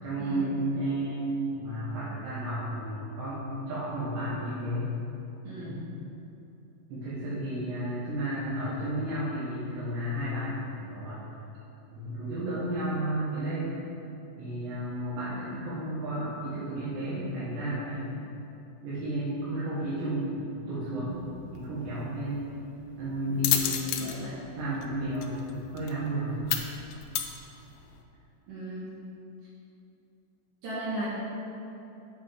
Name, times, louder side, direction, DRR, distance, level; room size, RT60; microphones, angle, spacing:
voice 1, 0.0-4.9 5.6-5.8 6.9-11.2 11.9-13.7 14.4-18.2 18.8-20.4 20.7-21.2 21.5-22.5 23.0-24.1 24.5-26.4, right 1 dB, 75° right, -11 dB, 3.9 m, -32 dB
voice 2, 5.4-5.8 23.3-23.5 24.0-24.4 28.5-29.0 30.6-31.1, right 1 dB, 60° right, -8 dB, 2.7 m, -37 dB
sound 1, 21.1-28.0, left 10 dB, 90° left, 2.9 m, -34 dB
9.2 x 7.5 x 3.7 m, 2.9 s
omnidirectional pair, 5.1 m